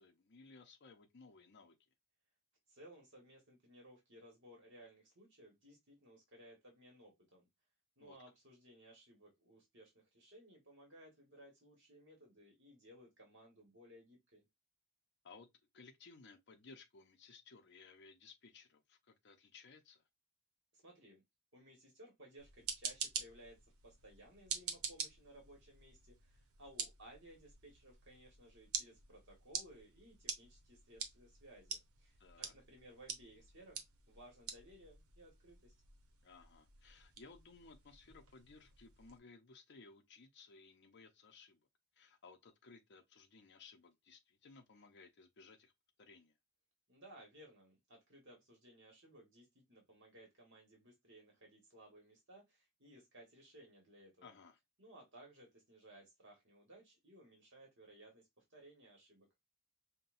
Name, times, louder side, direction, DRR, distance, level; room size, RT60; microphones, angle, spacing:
voice 1, 0.0-1.7 8.0-8.2 15.2-15.5 15.7-20.0 32.2-32.5 36.2-41.6 41.9-45.7 46.0-46.3 54.2-54.6, left 4 dB, 50° left, 0.6 m, -59 dB
voice 2, 2.7-7.5 8.0-14.4 20.7-21.2 21.5-35.7 46.9-54.3 54.8-59.3, right 1 dB, 55° right, 1.4 m, -60 dB
sound 1, 22.4-39.2, right 6 dB, 85° right, 0.9 m, -48 dB
5.5 x 2.2 x 2.5 m
head